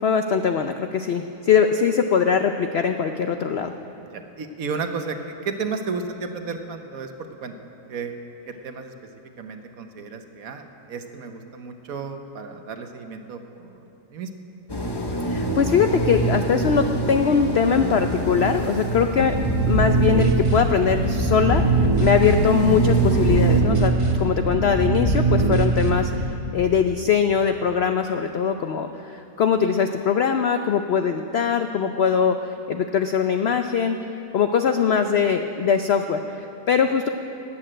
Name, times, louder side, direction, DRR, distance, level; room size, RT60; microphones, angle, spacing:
voice 1, 0.0-3.7 15.3-19.4 19.7-26.1 26.5-32.4 32.7-34.0 34.3-37.1, left 6 dB, 85° left, 7 dB, 0.5 m, -21 dB
voice 2, 4.1-7.1 7.4-7.5 7.9-8.1 8.5-8.9 9.4-13.8 14.1-14.3, right 4 dB, 60° right, 6 dB, 1.3 m, -33 dB
sound 1, 14.7-23.6, right 2 dB, 20° left, 0.9 m, -26 dB
sound 2, 19.2-26.2, right 3 dB, 20° right, 1.1 m, -22 dB
14.0 x 8.8 x 8.9 m, 2.7 s
omnidirectional pair, 1.8 m